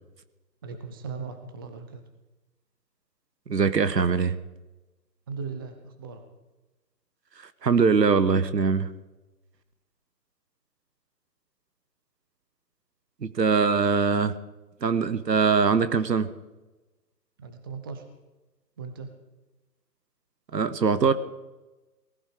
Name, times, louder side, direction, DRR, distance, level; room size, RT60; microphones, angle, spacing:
voice 1, 0.6-2.0 5.3-6.2 17.4-18.0 18.8-19.1, right 5 dB, 15° right, 7 dB, 0.7 m, -38 dB
voice 2, 3.5-4.4 7.6-8.9 13.2-14.3 14.8-16.3 20.5-21.1, right 5 dB, 75° right, 13 dB, 1.4 m, -22 dB
19.0 x 14.5 x 5.1 m, 1.1 s
figure-of-eight pair, 145°, 50 cm